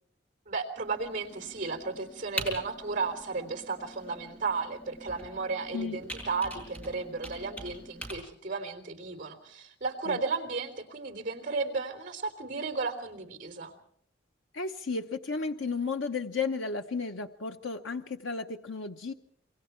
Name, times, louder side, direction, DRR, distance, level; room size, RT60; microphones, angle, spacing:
voice 1, 0.5-13.7, right 4 dB, 45° right, 7 dB, 3.6 m, -34 dB
Computer keyboard, 0.8-8.1, right 1 dB, 5° left, 7.0 m, -43 dB
voice 2, 14.5-19.1, left 4 dB, 90° left, 6 dB, 0.9 m, -33 dB
27.0 x 23.0 x 4.5 m, 0.64 s
head